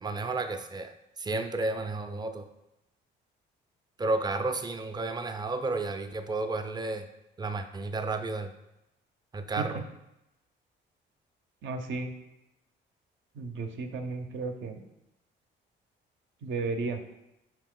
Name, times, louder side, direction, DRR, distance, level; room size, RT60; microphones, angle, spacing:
voice 1, 0.0-0.9 1.2-2.5 4.0-7.0 7.4-8.5 9.3-9.8, right 3 dB, 20° right, 8 dB, 0.4 m, -32 dB
voice 2, 11.6-12.1 13.4-14.8 16.4-17.0, right 3 dB, 70° right, 5 dB, 0.6 m, -33 dB
4.8 x 2.8 x 3.7 m, 0.90 s
cardioid pair, 90°, 20 cm